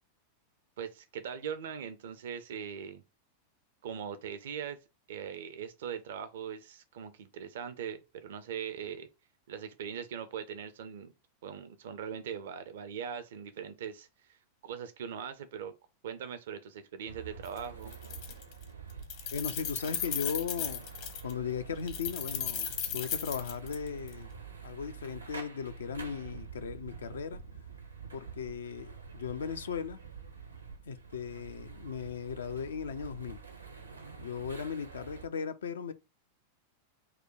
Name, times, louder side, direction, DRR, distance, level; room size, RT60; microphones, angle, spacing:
voice 1, 0.8-3.0 3.8-4.8 5.1-9.1 9.5-11.1 11.4-14.4 14.6-15.7 16.0-18.0, right 8 dB, 60° right, 0.5 m, -40 dB
sound 1, 17.1-35.3, right 6 dB, 80° right, 0.8 m, -47 dB
Keys jangling, 17.5-17.6 17.9-18.6 18.9-21.3 21.9-24.1, left 8 dB, 50° left, 0.9 m, -36 dB
voice 2, 19.3-20.9 21.2-24.3 24.6-27.4 28.1-30.0 30.9-33.4 34.2-35.9, left 6 dB, 65° left, 0.5 m, -37 dB
4.8 x 2.1 x 4.6 m
figure-of-eight pair, 90°, 0 cm